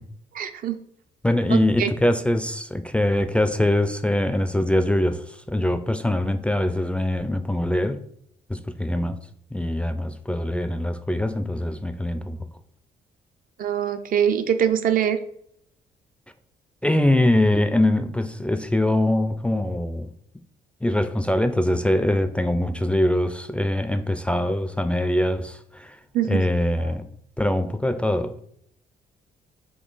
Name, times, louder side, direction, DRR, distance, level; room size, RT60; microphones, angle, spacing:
voice 1, 0.3-0.8 1.5-1.9 13.6-15.2 26.1-26.4, right 9 dB, 60° right, 0.5 m, -23 dB
voice 2, 1.2-8.0 8.5-9.2 9.5-12.4 16.8-20.1 20.8-26.0 26.3-27.1 27.4-28.5, left 1 dB, 5° left, 0.3 m, -23 dB
3.8 x 2.8 x 3.9 m
cardioid pair, 75°, 16 cm